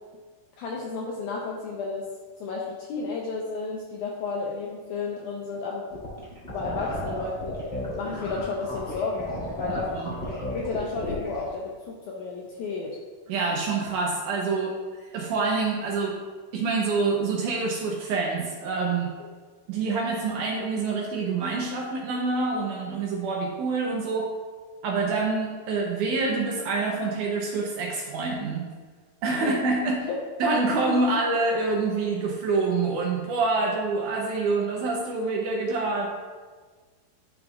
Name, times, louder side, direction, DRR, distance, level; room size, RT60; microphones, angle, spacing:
voice 1, 0.6-2.1 2.4-5.9 6.5-7.6 8.0-9.3 9.6-9.9 10.5-13.0 29.4-29.5 30.1-30.2, left 4 dB, 80° left, -2 dB, 1.8 m, -32 dB
sound 1, 5.9-11.5, left 1 dB, 35° left, 1.1 m, -34 dB
voice 2, 9.7-10.1 13.3-14.7 15.0-16.2 16.5-19.1 19.7-24.3 24.8-28.6 29.2-30.1 30.4-36.1, right 3 dB, 75° right, -1 dB, 1.9 m, -26 dB
10.5 x 5.2 x 2.3 m, 1.5 s
omnidirectional pair, 4.2 m